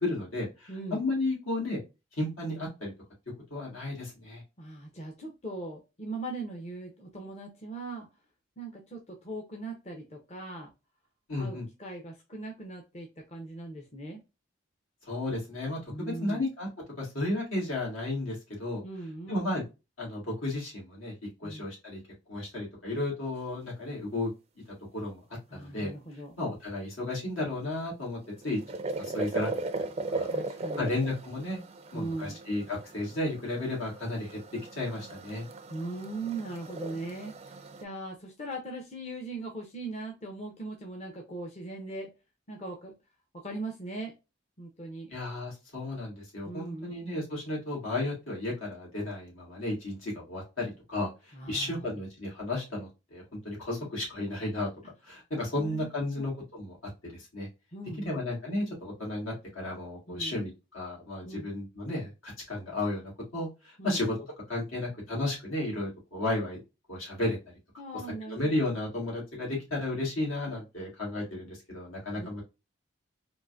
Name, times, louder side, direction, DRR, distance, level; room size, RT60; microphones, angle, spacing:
voice 1, 0.0-1.8 2.2-2.9 3.5-4.4 11.3-11.6 15.1-16.7 17.0-18.8 19.3-19.6 20.0-21.1 21.4-22.0 22.3-24.3 24.9-25.2 25.5-25.9 26.4-28.2 28.4-28.6 29.0-29.5 30.1-30.3 30.8-31.6 31.9-35.5 45.1-54.7 55.0-56.8 57.0-57.5 58.0-66.6 66.9-67.4 68.3-72.4, left 2 dB, 80° left, -3 dB, 2.0 m, -33 dB
voice 2, 0.7-1.0 4.6-8.1 8.6-10.7 11.4-14.2 15.9-16.4 18.8-19.4 21.4-21.7 25.5-26.3 30.3-30.9 31.9-32.4 35.7-42.1 42.5-42.9 43.3-44.1 44.6-45.1 46.4-46.9 51.3-52.0 55.6-55.9 56.2-56.3 57.7-58.2 60.1-60.4 61.2-61.5 63.8-64.0 67.8-68.4 72.2-72.3, right 2 dB, 30° left, 1 dB, 0.6 m, -39 dB
sound 1, 28.0-37.8, right 2 dB, 30° right, 0.3 m, -38 dB
3.7 x 2.5 x 2.4 m, 0.26 s
head